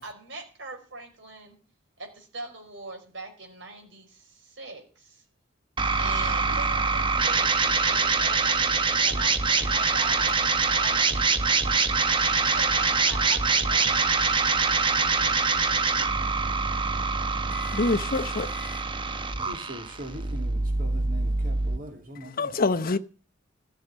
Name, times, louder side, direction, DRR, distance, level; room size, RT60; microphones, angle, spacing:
voice 1, 0.0-1.6 2.0-5.2 6.0-7.5 7.8-11.2 11.5-11.8 12.5-14.3, right 2 dB, 70° right, 5.0 m, -41 dB
sound 1, 5.8-21.8, right 4 dB, 25° right, 0.9 m, -24 dB
voice 2, 17.5-18.8 22.4-23.0, left 3 dB, 50° left, 0.8 m, -26 dB
voice 3, 19.4-22.6, right 1 dB, 45° right, 2.3 m, -41 dB
14.0 x 6.6 x 9.7 m
head